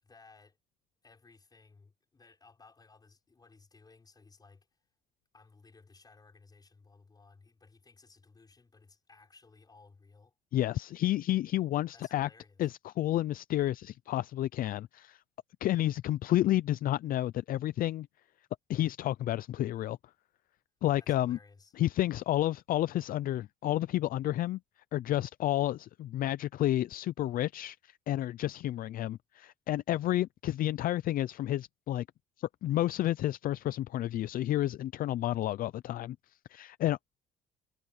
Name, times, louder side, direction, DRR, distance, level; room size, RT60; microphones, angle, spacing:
voice 1, 0.0-0.6 1.0-4.8 5.3-10.3 11.9-12.7 21.0-21.7, left 4 dB, 25° left, 6.1 m, -59 dB
voice 2, 10.5-12.3 12.6-15.2 15.6-18.1 18.7-20.0 20.8-21.4 21.8-24.6 24.9-32.1 32.4-36.2 36.5-37.0, left 14 dB, 55° left, 0.5 m, -30 dB
cardioid pair, 110°, 17 cm